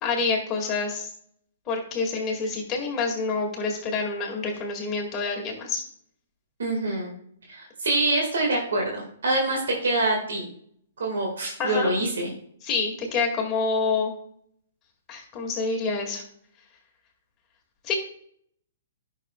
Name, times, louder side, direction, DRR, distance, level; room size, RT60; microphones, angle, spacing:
voice 1, 0.0-1.1 1.7-5.8 11.6-11.9 12.6-14.1 15.1-16.2 17.8-17.9, left 4 dB, 25° left, 0 dB, 2.2 m, -27 dB
voice 2, 6.6-7.1 7.5-10.5 11.0-12.3, right 2 dB, 80° right, 0 dB, 2.0 m, -25 dB
11.0 x 6.3 x 2.4 m, 0.66 s
hypercardioid pair, 135°, 0 cm